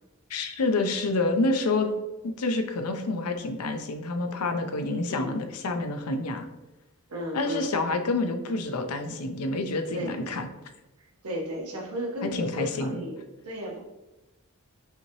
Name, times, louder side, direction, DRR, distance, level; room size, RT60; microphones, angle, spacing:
voice 1, 0.3-1.9 2.2-6.4 7.3-10.5 12.3-13.0, left 2 dB, 90° left, 6 dB, 0.6 m, -28 dB
voice 2, 7.1-7.7 9.9-10.2 11.0-13.2 13.4-13.8, equal, 90° right, -2 dB, 1.2 m, -34 dB
5.6 x 2.8 x 3.0 m, 1.0 s
head